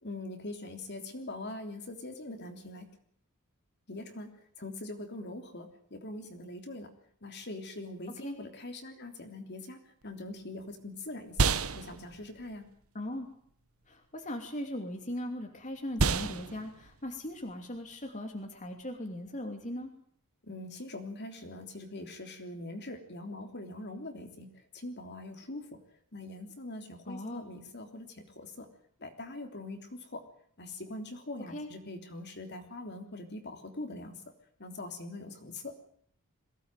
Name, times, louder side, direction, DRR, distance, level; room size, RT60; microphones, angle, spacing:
voice 1, 0.0-2.9 3.9-6.9 7.2-12.7 20.4-25.8 26.1-28.7 29.0-30.2 30.6-34.2 34.6-35.8, left 2 dB, 50° left, 5 dB, 3.4 m, -43 dB
sound 1, 10.0-19.6, right 4 dB, 75° right, 1.3 m, -35 dB
voice 2, 12.9-13.3 13.9-19.9 27.1-27.4 31.5-31.7, left 1 dB, 35° left, 4 dB, 2.9 m, -39 dB
22.5 x 17.5 x 9.2 m, 0.63 s
head